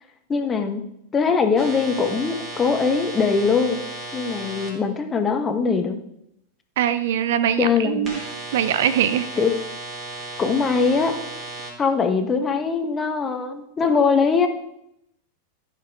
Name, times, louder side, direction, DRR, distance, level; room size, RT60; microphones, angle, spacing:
voice 1, 0.3-0.8 1.1-3.8 4.1-6.0 7.6-8.1 9.4-9.5 10.4-11.1 11.8-14.5, left 5 dB, 20° left, 6 dB, 1.3 m, -21 dB
sound 1, 1.5-4.7 8.0-11.7, right 2 dB, 30° right, 3.4 m, -35 dB
voice 2, 6.8-8.2 8.5-9.3, right 10 dB, 55° right, 12 dB, 0.7 m, -22 dB
14.0 x 6.0 x 4.7 m, 0.77 s
figure-of-eight pair, 90°, 0 cm